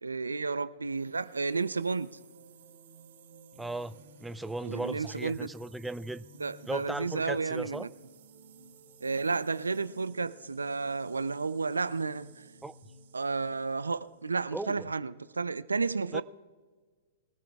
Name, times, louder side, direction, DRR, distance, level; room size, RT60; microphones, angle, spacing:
voice 1, 0.0-2.1 4.6-5.5 6.4-7.9 9.0-12.4 13.1-16.2, right 4 dB, 90° right, 0.5 m, -32 dB
sound 1, 0.9-14.3, right 3 dB, 60° right, 4.4 m, -55 dB
voice 2, 3.6-6.3 6.7-7.9 12.6-12.7 14.5-14.9 16.1-16.2, right 2 dB, 5° right, 0.4 m, -37 dB
22.5 x 14.5 x 2.4 m
hypercardioid pair, 115°, 0 cm